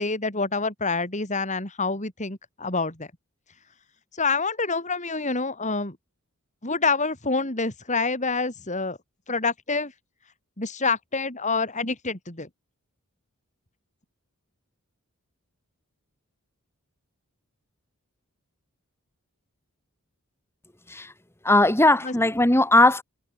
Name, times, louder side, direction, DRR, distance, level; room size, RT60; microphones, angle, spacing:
voice 1, 0.0-3.1 4.2-6.0 6.6-9.0 9.3-9.9 10.6-12.5 22.0-22.1, left 4 dB, 35° left, 4.2 m, -27 dB
voice 2, 21.4-23.0, left 2 dB, 10° left, 2.4 m, -18 dB
head